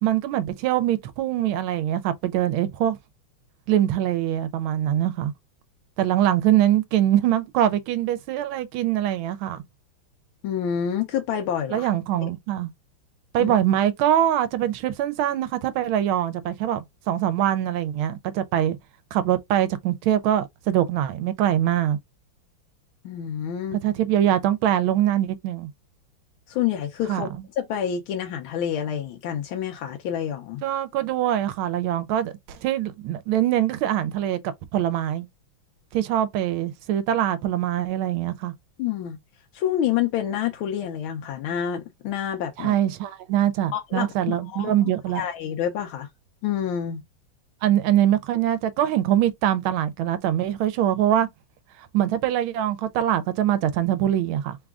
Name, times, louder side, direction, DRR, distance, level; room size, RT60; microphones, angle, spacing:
voice 1, 0.0-3.0 3.7-5.3 6.0-9.6 11.7-12.7 13.3-18.8 19.1-22.0 23.7-25.7 27.1-27.3 30.6-34.4 34.7-35.3 35.9-38.5 42.6-45.2 47.6-51.3 51.9-54.6, right 11 dB, 85° right, 1.4 m, -23 dB
voice 2, 10.4-11.9 12.2-12.3 13.4-13.5 23.0-23.8 26.5-27.3 27.6-30.6 38.8-39.2 39.5-42.8 43.7-44.7 45.1-46.1 46.4-47.0, left 9 dB, 90° left, 1.4 m, -28 dB
3.8 x 2.3 x 3.5 m
omnidirectional pair, 2.2 m